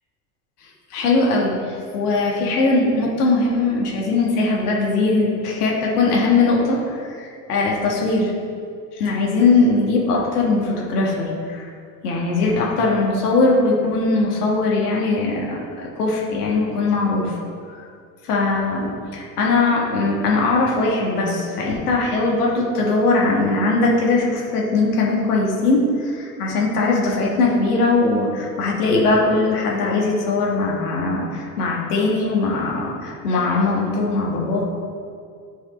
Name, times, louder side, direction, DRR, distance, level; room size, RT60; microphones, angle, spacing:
voice 1, 0.9-1.5 1.9-8.3 9.0-11.7 12.0-15.6 16.0-17.2 18.3-34.6, left 3 dB, 85° left, -3 dB, 1.7 m, -20 dB
11.0 x 3.8 x 3.8 m, 2.3 s
hypercardioid pair, 85°, 44 cm